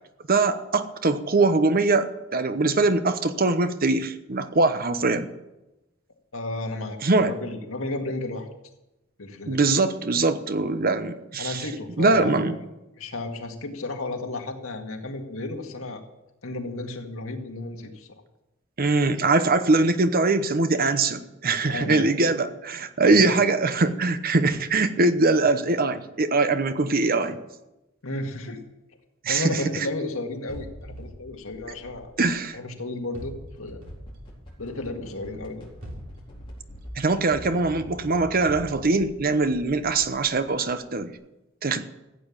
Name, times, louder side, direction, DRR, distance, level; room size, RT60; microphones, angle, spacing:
voice 1, 0.3-5.3 7.0-7.3 9.5-11.6 12.0-12.6 18.8-27.4 29.2-29.9 32.2-32.6 37.0-41.1 41.6-41.8, right 3 dB, 45° right, 11 dB, 0.9 m, -22 dB
voice 2, 6.3-8.5 9.2-9.6 11.4-12.6 13.0-16.0 16.4-18.1 21.7-22.1 23.0-23.2 28.0-28.6 29.3-32.1 32.5-33.8 34.6-35.7, left 2 dB, 80° left, 3 dB, 1.9 m, -33 dB
sound 1, 30.5-32.6 33.1-35.0 35.6-40.7, equal, 70° right, 3.0 m, -44 dB
sound 2, 33.6-37.0 37.3-37.4, equal, 25° left, 4.3 m, -45 dB
15.0 x 8.7 x 7.3 m, 0.97 s
head